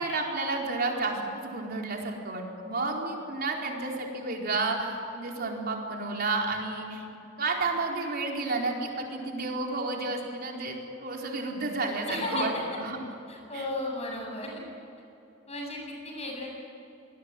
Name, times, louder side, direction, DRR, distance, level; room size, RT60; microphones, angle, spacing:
voice 1, 0.0-7.1 7.4-13.0 13.5-13.6, right 3 dB, 50° right, 0 dB, 4.6 m, -31 dB
voice 2, 12.1-12.5 13.3-14.6 15.5-16.5, left 2 dB, 35° left, 0 dB, 8.0 m, -34 dB
26.5 x 21.0 x 9.2 m, 2.8 s
head